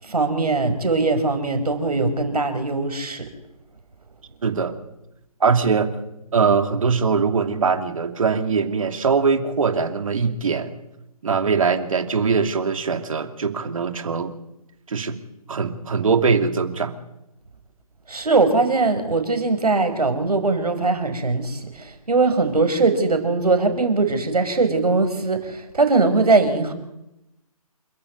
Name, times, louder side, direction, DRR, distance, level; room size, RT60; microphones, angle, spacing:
voice 1, 0.0-3.3 18.1-26.7, right 3 dB, 80° right, 8 dB, 5.3 m, -21 dB
voice 2, 4.4-4.7 5.4-5.9 6.3-10.8 11.2-14.3 14.9-15.2 15.5-16.9, right 5 dB, 60° right, 7 dB, 2.8 m, -21 dB
28.0 x 13.5 x 8.5 m, 0.91 s
figure-of-eight pair, 150°, 19 cm